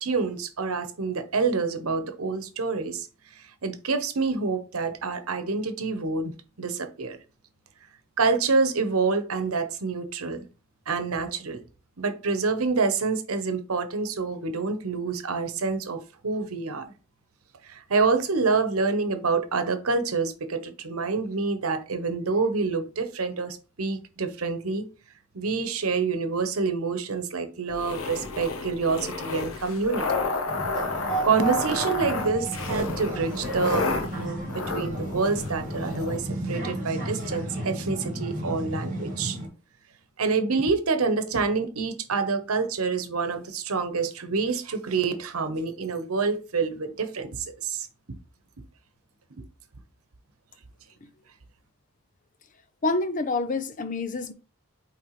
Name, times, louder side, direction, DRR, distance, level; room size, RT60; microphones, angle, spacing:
voice 1, 0.0-3.1 3.3-6.3 6.6-7.2 8.2-10.4 10.9-11.6 12.0-16.9 17.6-24.8 25.3-30.4 31.2-34.4 34.7-39.4 40.2-47.9, right 4 dB, 90° right, 0.9 m, -27 dB
sound 1, 27.7-36.2, left 3 dB, 80° left, 1.0 m, -32 dB
sound 2, 30.5-39.5, right 2 dB, 40° right, 1.8 m, -33 dB
voice 2, 52.8-54.3, left 3 dB, 40° left, 0.6 m, -27 dB
8.7 x 3.5 x 3.1 m
head